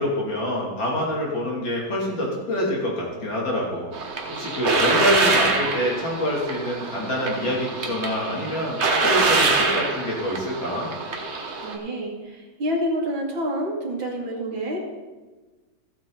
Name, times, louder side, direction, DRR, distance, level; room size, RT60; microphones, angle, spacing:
voice 1, 0.0-3.9 4.3-10.9, equal, 70° left, -4 dB, 3.7 m, -26 dB
sound 1, 3.9-11.7, right 3 dB, 40° right, 1.3 m, -24 dB
voice 2, 11.6-14.8, equal, 75° right, -1 dB, 3.0 m, -28 dB
15.0 x 8.5 x 4.0 m, 1.2 s
omnidirectional pair, 2.2 m